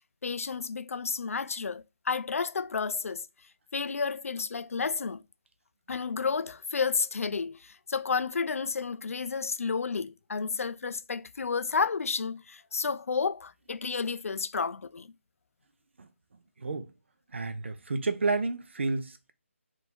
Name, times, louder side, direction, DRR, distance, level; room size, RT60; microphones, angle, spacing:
voice 1, 0.2-3.3 3.7-5.2 5.9-15.1, left 5 dB, 85° left, 0.4 m, -31 dB
voice 2, 16.6-16.9 17.3-19.3, right 3 dB, 60° right, 0.6 m, -30 dB
3.6 x 2.6 x 4.3 m
hypercardioid pair, 175°, 7 cm